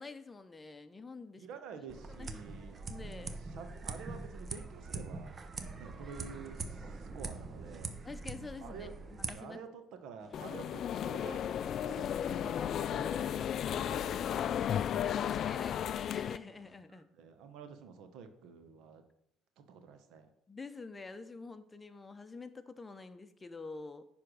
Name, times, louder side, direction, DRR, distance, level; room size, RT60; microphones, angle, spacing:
voice 1, 0.0-1.5 1.8-2.3 2.8-3.4 8.0-9.6 15.0-17.1 20.5-24.1, left 3 dB, 20° left, 11 dB, 0.7 m, -47 dB
voice 2, 1.4-5.4 5.8-8.1 8.6-8.9 9.3-14.9 16.9-19.0 19.6-20.3, right 6 dB, 70° right, 8 dB, 1.1 m, -50 dB
sound 1, 1.9-9.3, right 3 dB, 35° right, 0.9 m, -43 dB
sound 2, 10.2-16.8, equal, 5° right, 1.9 m, -61 dB
sound 3, 10.3-16.4, left 9 dB, 55° left, 0.3 m, -34 dB
9.9 x 3.5 x 6.3 m, 0.76 s
supercardioid pair, 80°, 0 cm